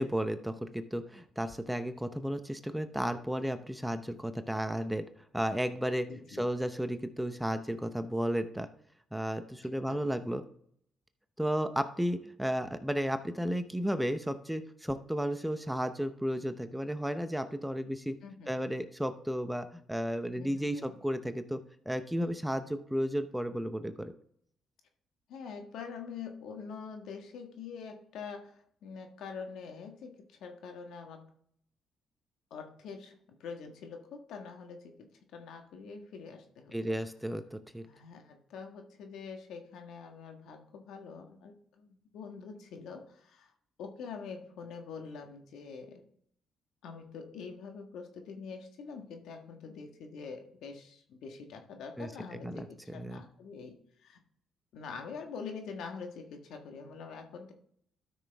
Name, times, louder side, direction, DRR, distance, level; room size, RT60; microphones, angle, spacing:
voice 1, 0.0-5.0 5.3-6.1 6.4-8.7 9.1-10.4 11.4-18.1 18.5-21.6 21.9-24.1 36.7-37.9 52.0-52.1 52.4-53.2, equal, 5° right, 9 dB, 0.7 m, -33 dB
voice 2, 6.1-6.4 9.6-10.1 18.2-18.7 20.4-20.9 22.2-22.4 25.3-31.3 32.5-37.0 37.9-43.5 43.8-46.0 46.8-54.2 54.7-57.5, left 5 dB, 80° left, 4 dB, 1.5 m, -45 dB
12.5 x 6.1 x 3.5 m, 0.66 s
cardioid pair, 90°, 0 cm